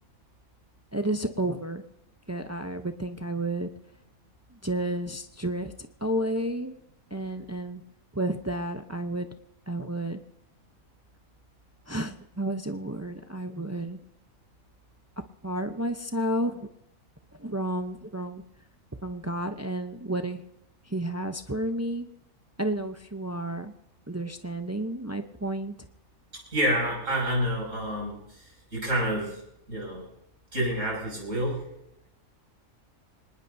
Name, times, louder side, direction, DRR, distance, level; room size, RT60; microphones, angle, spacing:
voice 1, 0.9-1.8 2.3-3.7 4.6-5.7 6.0-6.7 7.1-7.8 8.1-9.3 9.7-10.2 11.9-14.0 15.4-16.7 17.4-18.4 19.0-20.4 20.9-22.1 22.6-23.7 24.1-25.7, right 1 dB, 25° right, 7 dB, 0.3 m, -31 dB
voice 2, 26.5-29.4 29.7-30.0 30.5-31.7, equal, 65° right, -2 dB, 6.6 m, -28 dB
25.5 x 19.5 x 2.7 m, 0.82 s
omnidirectional pair, 1.4 m